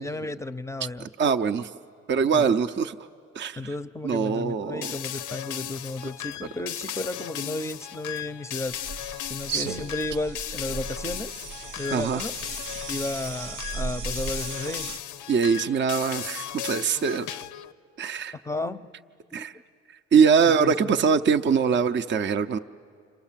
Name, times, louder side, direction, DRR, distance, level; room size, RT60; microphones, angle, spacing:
voice 1, 0.0-1.1 2.3-2.5 3.6-8.8 9.3-11.5 11.8-12.3 12.9-14.9 18.4-18.9 19.3-19.5 20.4-20.9, left 2 dB, 10° left, 13 dB, 0.6 m, -33 dB
voice 2, 1.0-1.7 2.1-2.9 3.4-3.6 4.0-4.9 11.9-12.2 15.3-17.3 18.0-18.4 19.3-19.5 20.1-22.6, right 6 dB, 40° right, 7 dB, 0.6 m, -23 dB
sound 1, 4.8-17.7, left 12 dB, 90° left, 0.6 m, -36 dB
sound 2, 8.6-15.0, right 5 dB, 85° right, 1.1 m, -36 dB
29.5 x 26.0 x 7.4 m, 2.5 s
cardioid pair, 90°, 30 cm